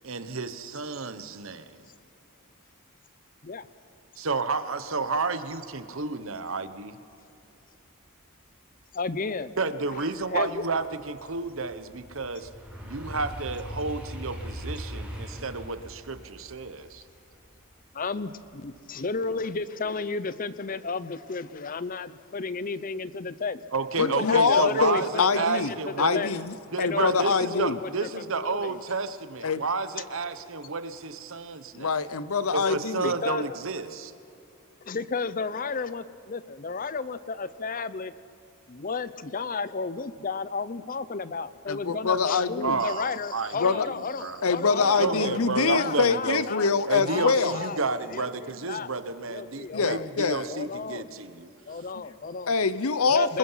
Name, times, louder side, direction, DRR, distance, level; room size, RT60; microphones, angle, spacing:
voice 1, 0.0-1.8 4.2-7.0 9.6-12.5 12.8-17.0 23.7-26.3 26.7-32.1 32.5-34.1 42.6-43.9 44.2-44.4 44.8-46.5 46.9-51.5, right 4 dB, 65° right, 12 dB, 1.0 m, -31 dB
voice 2, 8.9-9.5 9.9-10.0 10.3-10.6 17.9-23.6 24.0-25.8 26.1-26.3 26.8-28.8 33.0-33.5 34.8-38.1 38.7-46.7 47.0-47.8 48.1-48.9 49.3-50.1 50.5-51.1 51.7-52.6 53.1-53.4, left 4 dB, 40° left, 15 dB, 0.6 m, -33 dB
sound 1, 9.7-18.8 19.2-19.6, equal, 5° right, 6.4 m, -41 dB
voice 3, 24.0-27.8 29.4-29.6 31.8-33.1 41.7-42.8 43.6-43.9 44.4-47.6 49.7-50.5 52.5-53.4, left 5 dB, 80° left, 15 dB, 0.8 m, -24 dB
27.0 x 21.0 x 5.7 m, 2.9 s
head